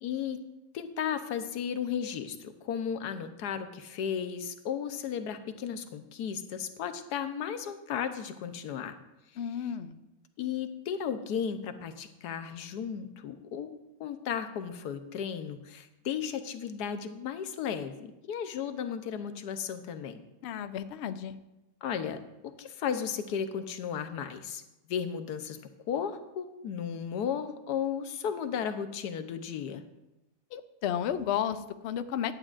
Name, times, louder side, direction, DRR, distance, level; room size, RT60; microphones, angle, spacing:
voice 1, 0.0-0.4 0.7-8.9 10.4-13.7 14.0-20.2 21.8-24.6 24.9-25.6 25.9-29.8, left 8 dB, 90° left, 8 dB, 1.3 m, -34 dB
voice 2, 9.4-9.9 20.4-21.4 30.5-32.3, left 9 dB, 65° left, 11 dB, 0.6 m, -33 dB
15.0 x 9.8 x 2.5 m, 0.95 s
omnidirectional pair, 1.7 m